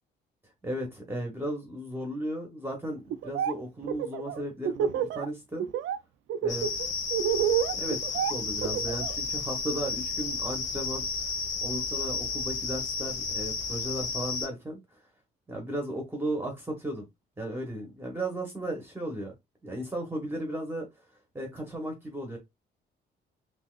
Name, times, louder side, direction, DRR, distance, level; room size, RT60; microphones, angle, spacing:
voice 1, 0.6-5.7 6.4-6.7 7.7-11.0 11.6-14.8 15.5-17.0 17.4-19.3 19.6-20.9 21.3-22.4, right 1 dB, 10° right, 0.9 m, -35 dB
Laughter, 3.1-3.5 3.8-5.2 5.6-6.0 6.3-9.1, right 9 dB, 75° right, 0.4 m, -28 dB
sound 1, 6.5-14.5, left 4 dB, 70° left, 1.1 m, -32 dB
3.5 x 2.8 x 2.3 m
cardioid pair, 90°, 20 cm